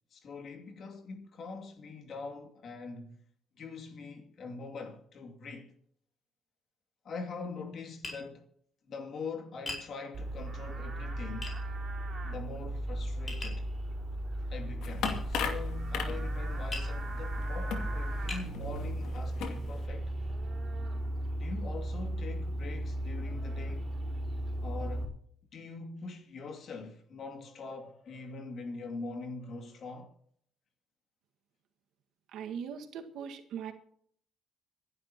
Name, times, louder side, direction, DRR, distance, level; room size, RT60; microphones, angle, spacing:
voice 1, 0.1-3.2 3.6-5.7 7.0-8.5 8.9-11.5 12.2-13.7 14.5-20.1 21.4-23.9 24.6-25.2 25.5-30.1, left 4 dB, 50° left, 2.6 m, -43 dB
Tap, 8.0-8.2 9.7-9.9 11.4-11.6 13.3-13.6 15.0-15.2 16.7-16.9 17.6-17.7 18.3-18.5, left 2 dB, 25° left, 4.6 m, -39 dB
Livestock farm animals working animals, 10.1-25.0, right 1 dB, 40° right, 4.3 m, -36 dB
sound 1, 14.8-19.9, left 6 dB, 80° left, 2.5 m, -39 dB
voice 2, 32.3-33.7, right 7 dB, 75° right, 1.7 m, -40 dB
26.0 x 11.0 x 3.0 m
cardioid pair, 140°, 0 cm